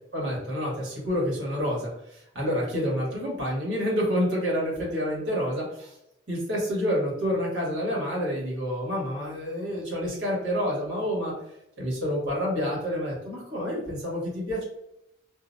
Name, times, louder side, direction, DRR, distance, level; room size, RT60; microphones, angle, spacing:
voice 1, 0.1-5.9 6.3-11.3 11.8-14.6, equal, 85° right, -4 dB, 1.2 m, -28 dB
2.3 x 2.1 x 2.5 m, 0.82 s
head